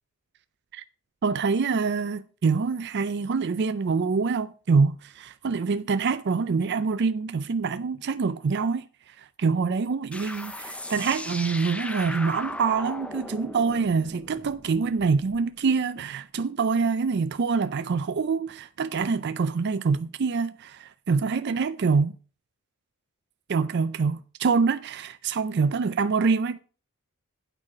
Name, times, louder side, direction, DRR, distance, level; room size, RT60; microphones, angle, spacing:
voice 1, 1.2-22.1 23.5-26.6, right 5 dB, 50° right, 0.4 m, -25 dB
sound 1, 10.1-15.4, left 1 dB, 5° left, 0.6 m, -37 dB
8.9 x 5.7 x 6.0 m
head